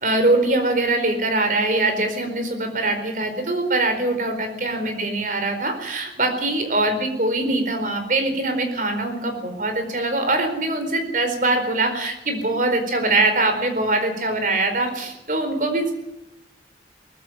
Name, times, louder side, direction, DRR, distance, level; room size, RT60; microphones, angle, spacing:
voice 1, 0.0-15.9, right 2 dB, 45° right, 6 dB, 4.6 m, -22 dB
19.5 x 15.5 x 9.3 m, 0.88 s
head